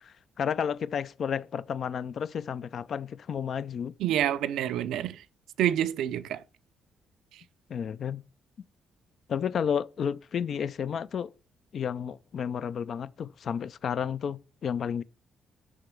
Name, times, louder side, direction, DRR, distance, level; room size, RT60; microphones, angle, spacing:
voice 1, 0.0-3.9 7.7-8.2 9.3-11.3 11.7-15.0, left 7 dB, 55° left, 0.3 m, -32 dB
voice 2, 4.0-5.2 5.6-6.4, right 11 dB, 85° right, 0.4 m, -27 dB
6.0 x 4.9 x 4.5 m
cardioid pair, 90°, 0 cm